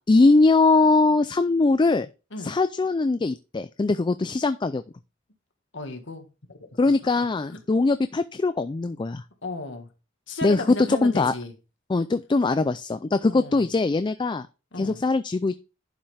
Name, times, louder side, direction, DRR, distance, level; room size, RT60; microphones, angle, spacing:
voice 1, 0.0-2.1 2.4-4.8 6.8-9.2 10.4-10.6 10.9-11.3 11.9-14.5 14.8-15.6, left 3 dB, 25° left, 0.4 m, -21 dB
voice 2, 5.7-6.8 7.2-7.3 7.5-7.6 9.4-9.9 10.3-11.5 13.3-13.6 14.7-15.0, left 2 dB, 65° left, 1.8 m, -35 dB
11.0 x 5.6 x 3.4 m
head